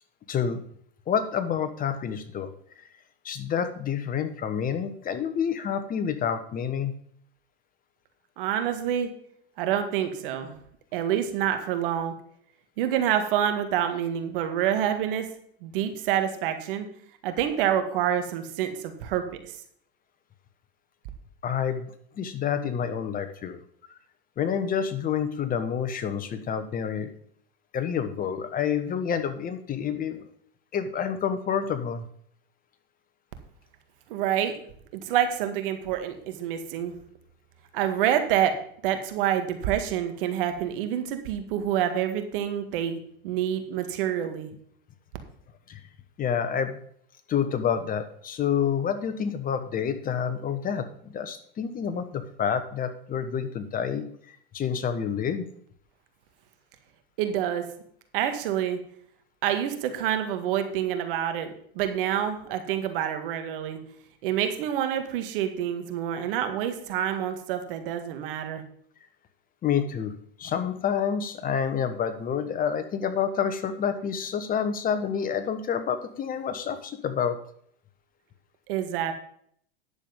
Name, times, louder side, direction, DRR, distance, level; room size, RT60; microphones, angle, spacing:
voice 1, 0.3-0.6 1.1-2.5 3.2-6.9 21.4-23.6 24.4-27.1 27.7-30.2 30.7-32.1 45.7-45.8 46.2-46.8 47.3-55.5 69.6-70.1 70.4-77.4, left 7 dB, 30° left, 10 dB, 1.1 m, -28 dB
voice 2, 8.4-9.1 9.6-10.6 10.9-12.1 12.8-15.3 15.6-16.9 17.2-19.6 34.1-34.6 34.9-37.0 37.7-38.5 38.8-43.0 43.2-44.5 57.2-57.7 58.1-58.8 59.4-61.5 61.8-63.8 64.2-68.6 78.7-79.1, right 10 dB, 65° right, 7 dB, 1.9 m, -27 dB
10.5 x 7.1 x 5.2 m, 0.63 s
hypercardioid pair, 105°, 29 cm